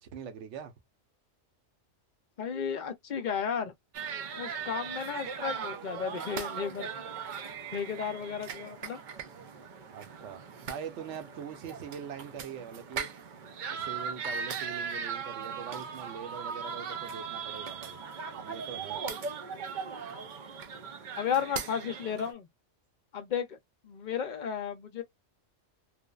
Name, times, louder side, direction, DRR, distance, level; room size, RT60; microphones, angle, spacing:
voice 1, 0.0-0.7 9.9-13.1 13.7-18.0 18.4-19.0, right 7 dB, 80° right, 1.0 m, -43 dB
voice 2, 2.4-3.7 4.4-6.9 7.7-9.0 21.2-22.5 23.1-23.6 23.8-25.0, left 7 dB, 55° left, 0.5 m, -33 dB
sound 1, 3.9-22.3, right 6 dB, 60° right, 0.5 m, -39 dB
3.2 x 2.0 x 2.3 m
omnidirectional pair, 1.2 m